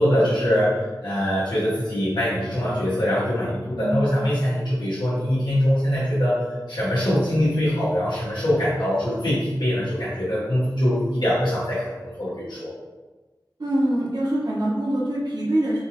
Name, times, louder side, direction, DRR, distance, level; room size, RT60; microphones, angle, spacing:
voice 1, 0.0-12.7, equal, 85° left, -11 dB, 1.1 m, -23 dB
voice 2, 3.8-4.1 13.6-15.8, right 1 dB, 60° right, -5 dB, 1.0 m, -24 dB
4.3 x 2.5 x 2.9 m, 1.2 s
wide cardioid pair, 60°, 8 cm